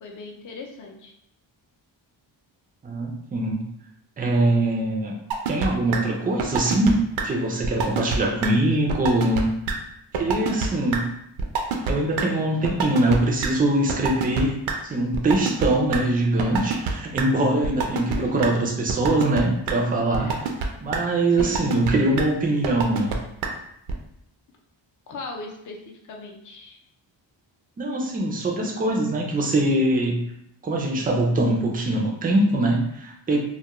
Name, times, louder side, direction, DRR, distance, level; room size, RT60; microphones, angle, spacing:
voice 1, 0.0-1.1 17.4-17.8 18.2-18.6 20.2-20.5 21.4-21.7 25.1-26.8 33.3-33.4, left 3 dB, 45° left, 1 dB, 0.5 m, -38 dB
voice 2, 2.8-3.7 4.2-5.2 5.5-9.5 10.1-11.0 11.9-14.5 14.8-20.3 20.8-23.1 27.8-30.2 30.6-33.4, right 1 dB, 20° right, 0 dB, 0.3 m, -23 dB
sound 1, 5.3-5.7 5.9-6.0 6.4-6.9 7.2-7.3 7.6-8.2 8.4-8.5 8.9-9.4 9.7-9.8 10.1-10.7 10.9-11.0 11.4-11.9 12.2-12.3 12.6-13.5 13.9-14.7 15.1-16.0 16.4-16.9 17.2-17.3 17.6-18.2 18.4-18.5 18.9-19.4 19.7-19.8 20.1-20.7 20.9-21.0 21.4-21.9 22.2-22.3 22.6-23.2 23.4-23.5 23.9-24.0, right 6 dB, 80° right, 0.5 m, -25 dB
2.4 x 2.1 x 2.9 m, 0.78 s
wide cardioid pair, 135°, 47 cm